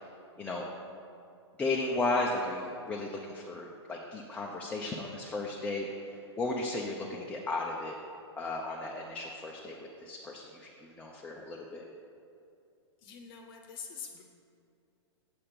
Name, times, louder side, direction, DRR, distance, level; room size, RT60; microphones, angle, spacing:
voice 1, 1.6-8.0 8.4-11.8, left 2 dB, 10° left, -2 dB, 0.6 m, -35 dB
voice 2, 13.0-14.2, left 6 dB, 50° left, 3 dB, 0.8 m, -45 dB
7.6 x 4.3 x 6.8 m, 2.5 s
hypercardioid pair, 130°, 15 cm